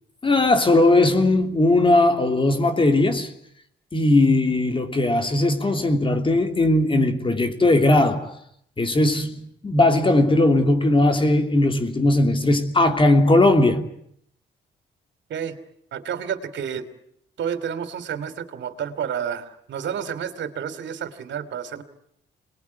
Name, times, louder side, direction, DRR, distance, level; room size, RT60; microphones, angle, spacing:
voice 1, 0.2-3.3 3.9-8.3 8.8-13.9, left 2 dB, 25° left, 3.0 m, -18 dB
voice 2, 15.9-16.9 17.4-21.8, right 8 dB, 70° right, 3.1 m, -30 dB
27.0 x 21.0 x 9.7 m
cardioid pair, 90°, 20 cm